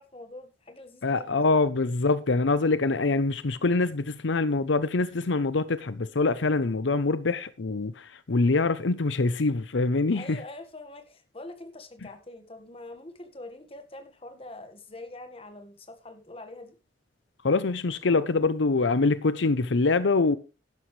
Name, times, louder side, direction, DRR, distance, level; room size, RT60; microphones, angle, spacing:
voice 1, 0.0-1.5 10.1-16.8, left 2 dB, 30° left, 1.7 m, -44 dB
voice 2, 1.0-10.4 17.4-20.4, left 3 dB, 85° left, 0.7 m, -24 dB
11.5 x 11.0 x 3.3 m
head